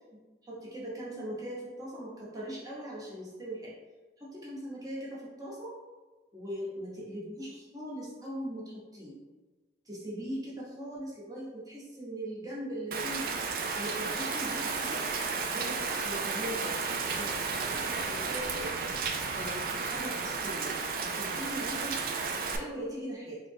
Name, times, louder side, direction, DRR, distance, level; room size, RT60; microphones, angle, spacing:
voice 1, 0.1-3.7 4.2-5.7 6.3-9.2 9.9-13.3 13.7-15.1 15.5-18.7 19.3-20.7 21.0-23.4, equal, 20° right, -7 dB, 0.9 m, -40 dB
Rain, 12.9-22.6, right 4 dB, 50° right, 0.3 m, -33 dB
3.6 x 2.1 x 3.3 m, 1.2 s
head